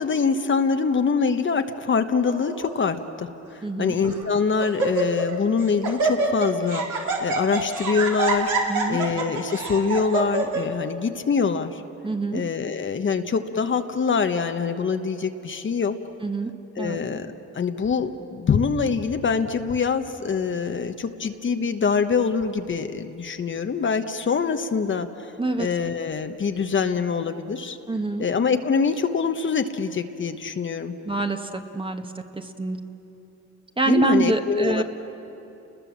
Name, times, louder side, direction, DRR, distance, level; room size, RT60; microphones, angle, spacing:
voice 1, 0.0-6.9 7.2-8.5 8.9-11.8 12.3-16.0 16.8-25.3 25.6-27.8 28.2-31.0 33.9-34.8, left 5 dB, 40° left, 7 dB, 1.2 m, -24 dB
Laughter, 2.3-2.7 3.5-3.6 4.0-4.3 4.6-5.4 5.6-10.6, right 3 dB, 80° right, 4.0 m, -26 dB
voice 2, 3.6-3.9 8.7-9.0 12.0-12.4 16.2-16.5 16.8-17.0 25.4-25.7 27.9-28.2 31.0-32.0 32.3-32.8 33.8-34.8, right 2 dB, 15° right, 6 dB, 1.5 m, -25 dB
30.0 x 20.5 x 7.4 m, 3.0 s
cardioid pair, 90°, 30 cm